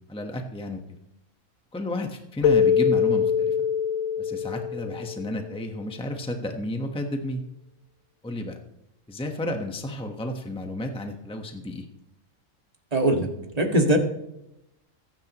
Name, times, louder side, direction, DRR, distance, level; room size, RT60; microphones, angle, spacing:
voice 1, 0.1-0.8 1.7-3.6 4.2-7.4 8.2-8.6 9.1-11.9, left 1 dB, 5° left, 4 dB, 1.2 m, -32 dB
Keyboard (musical), 2.4-5.6, left 7 dB, 80° left, 1.3 m, -23 dB
voice 2, 12.9-13.3 13.6-14.0, right 1 dB, 30° right, 2 dB, 2.0 m, -20 dB
23.5 x 10.5 x 3.1 m, 0.84 s
omnidirectional pair, 1.4 m